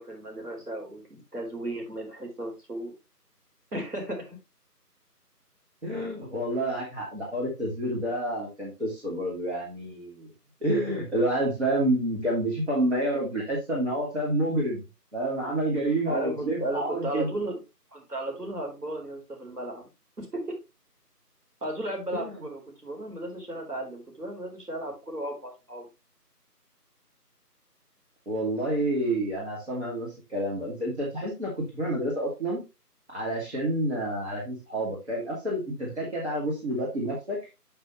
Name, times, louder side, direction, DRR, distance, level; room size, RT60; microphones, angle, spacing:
voice 1, 0.0-2.9 3.7-4.4 16.1-17.6 17.9-19.9 20.2-20.6 21.6-25.9, right 1 dB, 70° right, 0 dB, 3.9 m, -35 dB
voice 2, 5.8-10.3 10.6-14.8 15.1-17.3 22.1-22.4 28.3-32.6 33.1-37.4, right 1 dB, 45° right, -4 dB, 2.6 m, -29 dB
8.6 x 5.8 x 3.0 m, 0.26 s
figure-of-eight pair, 170°, 48 cm